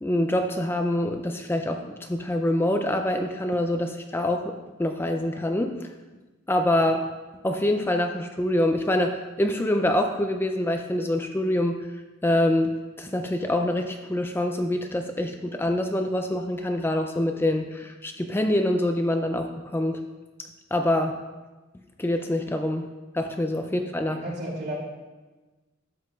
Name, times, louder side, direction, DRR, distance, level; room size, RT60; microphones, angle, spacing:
voice 1, 0.0-5.8 6.5-7.0 7.4-11.8 12.2-20.0 20.7-21.2 22.0-22.9 23.1-24.2, left 1 dB, 10° left, 4 dB, 0.4 m, -25 dB
voice 2, 24.1-24.7, right 1 dB, 55° right, -3 dB, 2.6 m, -34 dB
12.0 x 7.8 x 2.4 m, 1.2 s
head